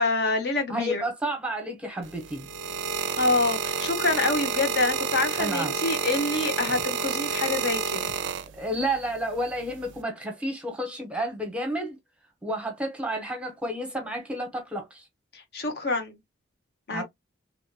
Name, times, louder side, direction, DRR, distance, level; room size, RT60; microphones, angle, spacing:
voice 1, 0.0-1.0 3.2-8.1 15.3-16.2 16.9-17.0, left 3 dB, 55° left, 0.8 m, -26 dB
voice 2, 0.7-2.5 5.4-5.8 8.6-12.0 12.4-15.0 16.9-17.0, right 1 dB, 5° right, 0.8 m, -31 dB
sound 1, 2.0-8.9 9.7-10.0, right 5 dB, 70° right, 0.4 m, -30 dB
3.0 x 2.8 x 2.2 m
head